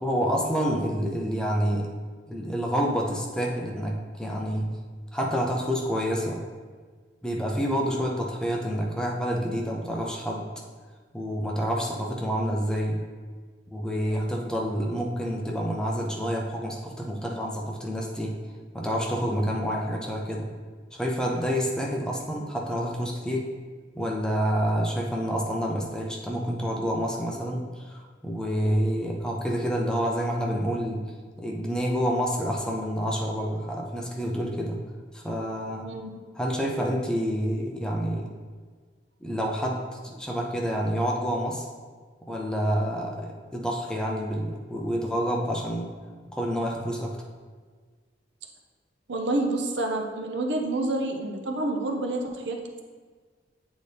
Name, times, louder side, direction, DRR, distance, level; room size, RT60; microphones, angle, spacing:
voice 1, 0.0-2.0 2.3-4.8 5.1-6.4 7.2-10.5 11.1-13.0 13.7-18.3 18.7-20.5 20.9-23.5 23.9-34.8 35.1-35.9 36.4-38.3 39.2-41.7 42.3-46.0 46.3-47.2, equal, 5° left, -1 dB, 0.6 m, -28 dB
voice 2, 14.1-14.4 35.8-36.1 49.1-52.8, right 2 dB, 70° right, 3 dB, 0.7 m, -29 dB
8.2 x 4.1 x 3.4 m, 1.5 s
head